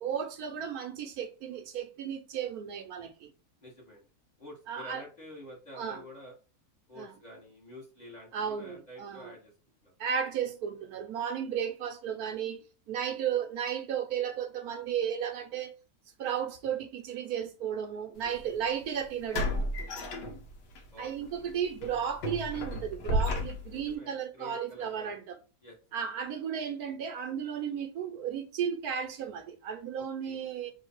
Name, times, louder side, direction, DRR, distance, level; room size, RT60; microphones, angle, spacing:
voice 1, 0.0-3.3 4.7-5.0 5.8-6.0 7.0-7.1 8.3-9.3 10.0-15.7 16.2-19.7 21.0-25.4 25.9-30.7, right 8 dB, 70° right, 1.1 m, -34 dB
voice 2, 3.6-4.1 4.4-6.3 6.9-9.5 9.8-9.9 18.2-18.3 19.9-20.4 20.9-21.5 23.7-25.2 25.6-25.8 30.0-30.4, left 1 dB, 30° left, 1.3 m, -49 dB
sound 1, 18.2-18.4 19.3-20.8 21.2-21.4 21.8-23.9, left 1 dB, 90° left, 1.6 m, -32 dB
3.6 x 3.2 x 4.4 m
omnidirectional pair, 1.7 m